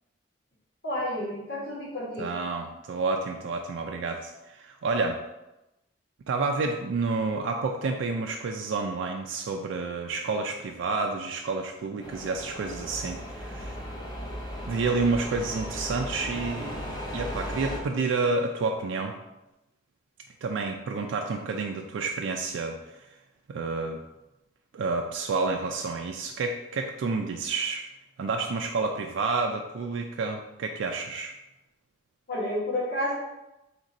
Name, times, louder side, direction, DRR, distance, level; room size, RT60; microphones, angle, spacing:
voice 1, 0.8-2.3 32.3-33.1, left 1 dB, 55° left, -6 dB, 1.4 m, -30 dB
voice 2, 2.2-5.2 6.3-13.8 14.7-16.8 17.1-19.1 20.4-23.1 23.5-24.0 24.7-27.9 28.2-31.3, right 3 dB, 85° right, 2 dB, 0.3 m, -29 dB
sound 1, 12.0-17.8, equal, 25° left, 0.6 m, -36 dB
3.6 x 2.5 x 4.0 m, 0.95 s
head